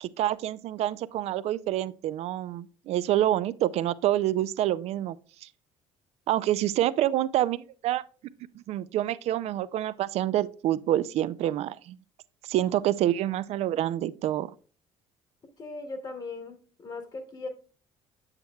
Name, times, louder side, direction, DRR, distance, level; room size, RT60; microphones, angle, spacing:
voice 1, 0.0-5.5 6.3-8.0 8.6-12.0 12.4-14.5, right 13 dB, 60° right, 0.4 m, -27 dB
voice 2, 15.6-17.5, left 3 dB, 40° left, 1.1 m, -38 dB
8.0 x 6.9 x 2.2 m
cardioid pair, 100°, 12 cm